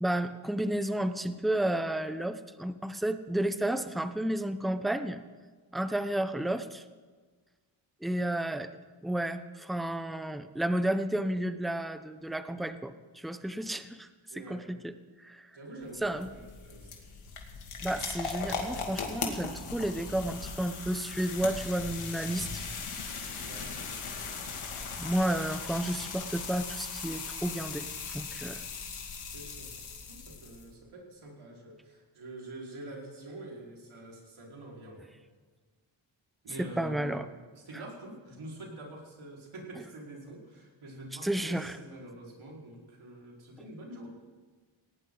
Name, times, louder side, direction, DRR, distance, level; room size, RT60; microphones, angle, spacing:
voice 1, 0.0-5.2 5.7-6.8 8.0-8.7 9.0-14.1 14.4-14.9 15.2-15.5 16.0-16.3 17.8-22.6 25.0-28.6 36.6-37.2 41.2-41.8, right 1 dB, ahead, 10 dB, 0.8 m, -32 dB
voice 2, 14.3-14.7 15.5-17.0 23.4-23.8 29.3-35.1 36.4-37.2 37.5-44.1, right 1 dB, 75° right, -2 dB, 4.9 m, -46 dB
sound 1, 15.8-30.7, left 5 dB, 85° left, 2.5 m, -39 dB
18.5 x 17.5 x 4.0 m, 1.4 s
wide cardioid pair, 95°, 49 cm